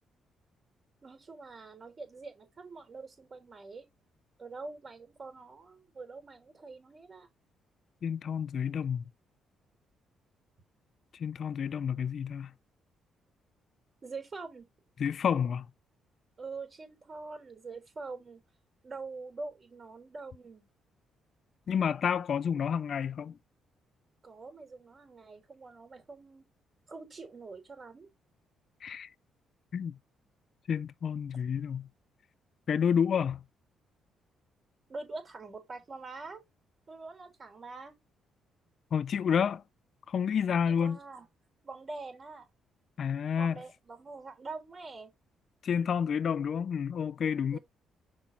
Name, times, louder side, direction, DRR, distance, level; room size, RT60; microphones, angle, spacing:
voice 1, 1.0-3.9 4.4-7.3 14.0-14.7 16.4-18.4 18.8-20.7 24.2-26.4 26.9-28.1 31.3-31.4 34.9-36.4 36.9-37.9 40.7-41.3 41.6-42.5 43.4-45.1 47.5-47.6, right 3 dB, 40° right, 3.8 m, -44 dB
voice 2, 8.0-9.0 11.1-12.5 15.0-15.7 21.7-23.4 28.8-29.1 29.7-30.0 30.7-31.9 32.7-33.4 38.9-39.6 40.1-41.0 43.0-43.6 45.6-47.6, left 7 dB, 55° left, 0.4 m, -29 dB
6.0 x 5.9 x 4.0 m
cardioid pair, 90°, 0 cm